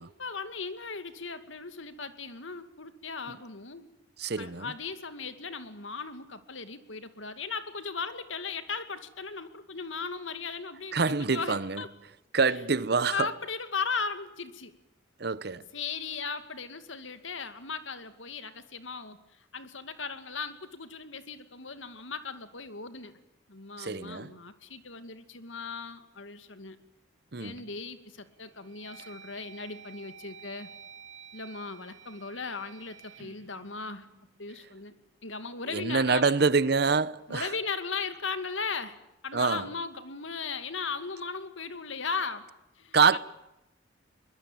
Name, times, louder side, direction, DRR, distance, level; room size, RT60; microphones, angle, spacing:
voice 1, 0.0-3.9 4.4-11.9 13.1-14.7 15.7-19.2 19.5-23.2 23.5-26.8 27.4-30.7 31.3-34.1 34.4-34.9 35.2-36.4 37.3-42.5 42.8-43.2, left 5 dB, 80° left, 2.4 m, -37 dB
voice 2, 4.2-4.7 10.9-11.8 12.3-13.3 15.2-15.7 23.8-24.3 27.3-27.6 35.7-37.5 39.3-39.7 42.9-43.2, right 4 dB, 55° right, 0.8 m, -26 dB
sound 1, 27.7-27.9 28.4-34.6, right 7 dB, 90° right, 2.6 m, -51 dB
23.0 x 21.5 x 9.1 m
head